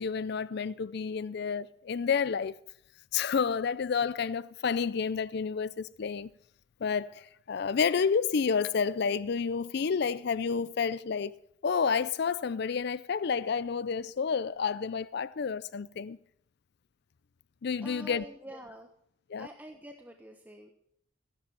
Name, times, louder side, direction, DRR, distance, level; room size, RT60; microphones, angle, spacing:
voice 1, 0.0-2.5 3.1-6.3 6.8-16.2 17.6-18.2 19.3-19.5, left 6 dB, 55° left, 0.4 m, -30 dB
voice 2, 17.8-18.9 19.4-20.7, equal, 10° right, 1.1 m, -46 dB
15.5 x 11.0 x 5.4 m
head